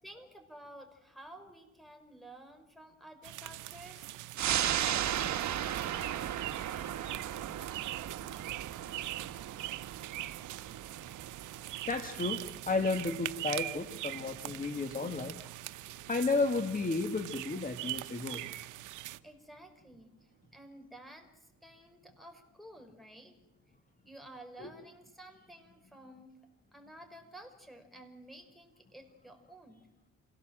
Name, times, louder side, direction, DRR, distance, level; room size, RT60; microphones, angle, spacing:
voice 1, 0.0-6.3 19.2-23.4 23.7-23.8 24.0-26.3 26.7-29.9, right 1 dB, ahead, 6 dB, 5.4 m, -53 dB
sound 1, 3.2-19.2, right 16 dB, 85° right, 0.9 m, -42 dB
sound 2, 4.4-15.3 15.7-15.8, right 10 dB, 65° right, 1.5 m, -37 dB
voice 2, 8.9-9.3 11.9-15.4 16.1-18.4 24.6-24.7, left 3 dB, 25° left, 5 dB, 2.0 m, -33 dB
28.0 x 17.5 x 7.7 m, 0.99 s
cardioid pair, 90°, 30 cm